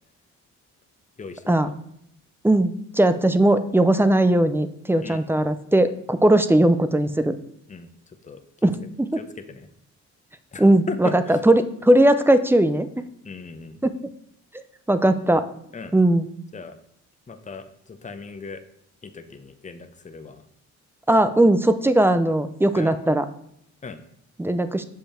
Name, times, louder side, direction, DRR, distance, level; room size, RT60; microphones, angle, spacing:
voice 1, 1.2-1.7 5.0-5.2 7.7-8.7 9.2-9.7 10.5-11.4 13.2-13.8 15.7-15.9 16.5-16.8 17.3-18.6 19.0-20.5 22.7-23.0 23.8-24.0, left 4 dB, 25° left, 8 dB, 0.8 m, -38 dB
voice 2, 2.4-7.4 8.6-9.1 10.6-13.0 13.8-14.1 14.9-15.4 15.9-16.3 21.1-23.2 24.4-24.9, right 1 dB, 10° right, 11 dB, 0.5 m, -19 dB
7.0 x 5.5 x 4.3 m, 0.73 s
cardioid pair, 90°, 30 cm